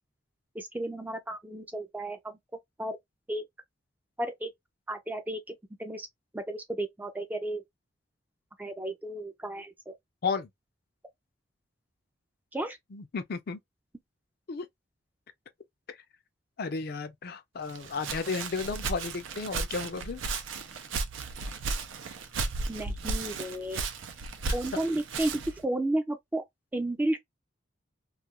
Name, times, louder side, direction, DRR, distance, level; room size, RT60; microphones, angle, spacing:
voice 1, 0.5-2.4 2.8-3.0 3.3-3.5 4.2-4.5 4.9-6.1 6.3-7.6 8.6-9.9 12.5-12.8 22.7-23.8 24.5-26.4 26.7-27.2, right 1 dB, 10° right, 0.4 m, -33 dB
voice 2, 12.9-13.6 14.5-14.7 15.9-16.0 16.6-20.2 24.7-24.8, left 4 dB, 50° left, 0.4 m, -33 dB
Walk footsteps, 17.7-25.6, right 4 dB, 85° right, 0.5 m, -35 dB
2.4 x 2.2 x 2.8 m
head